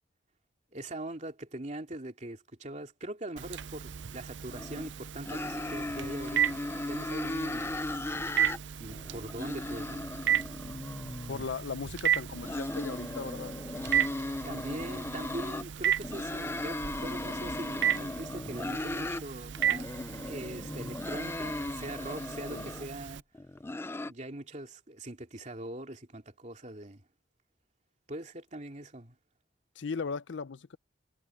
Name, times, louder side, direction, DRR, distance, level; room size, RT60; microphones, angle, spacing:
voice 1, 0.7-6.6 6.9-7.7 8.8-10.1 14.4-20.0 20.2-23.2 24.1-27.0 28.1-29.2, right 1 dB, 40° right, 2.8 m, -42 dB
Telephone, 3.4-23.2, right 9 dB, 85° right, 0.6 m, -35 dB
sound 1, 4.5-4.9 5.2-8.6 8.9-11.5 12.2-15.6 16.0-19.2 19.6-22.9 23.3-24.1, left 2 dB, 15° left, 0.3 m, -37 dB
voice 2, 11.3-13.5 22.5-22.7 29.8-30.8, left 5 dB, 85° left, 0.6 m, -37 dB
head